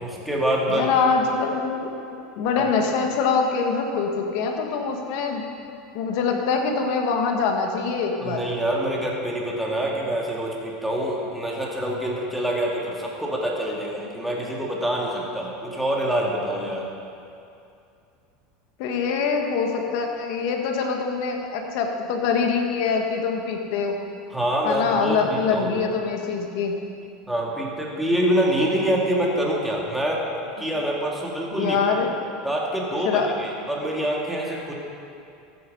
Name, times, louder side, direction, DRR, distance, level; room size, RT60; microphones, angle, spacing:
voice 1, 0.0-0.9 2.5-2.7 8.2-16.9 24.3-25.8 27.3-30.2 30.6-31.8 32.4-34.7, right 1 dB, 5° right, -3 dB, 2.2 m, -25 dB
voice 2, 0.7-1.9 2.4-5.4 5.9-8.4 18.8-24.0 24.6-26.7 31.5-32.1 33.0-33.3, left 5 dB, 65° left, 3 dB, 1.7 m, -24 dB
14.0 x 8.2 x 5.5 m, 2.6 s
supercardioid pair, 125°, 0 cm